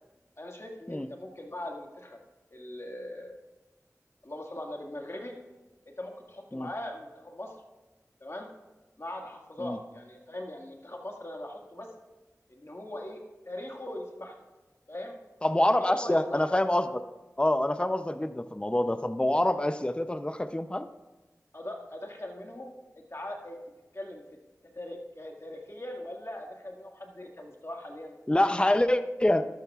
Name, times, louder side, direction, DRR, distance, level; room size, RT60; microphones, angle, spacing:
voice 1, 0.4-2.2 2.5-3.4 4.2-5.3 6.0-7.5 8.2-8.5 9.0-11.9 12.5-14.5 14.9-15.2 15.8-16.5 21.5-22.7 23.0-23.6 23.9-24.2 24.7-28.2, left 1 dB, 50° left, 1 dB, 1.9 m, -40 dB
voice 2, 15.4-17.0 17.4-20.9 28.3-29.4, left 1 dB, 15° left, 10 dB, 0.6 m, -26 dB
13.5 x 12.5 x 2.4 m, 1.1 s
wide cardioid pair, 40°, 6 cm